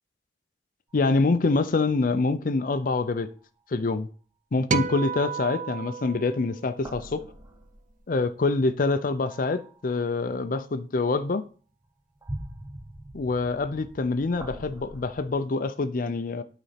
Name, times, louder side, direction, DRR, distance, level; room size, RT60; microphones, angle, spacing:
voice 1, 0.9-3.3 3.7-4.1 4.5-7.2 8.1-11.4 13.1-16.4, left 3 dB, 50° left, 0.5 m, -25 dB
sound 1, 0.9-2.3 2.6-3.4 6.5-8.5 9.3-10.3 11.0-11.1 11.8-15.3, right 1 dB, 15° right, 1.0 m, -44 dB
sound 2, 4.7-7.2, right 6 dB, 45° right, 0.4 m, -32 dB
8.3 x 4.1 x 5.8 m
head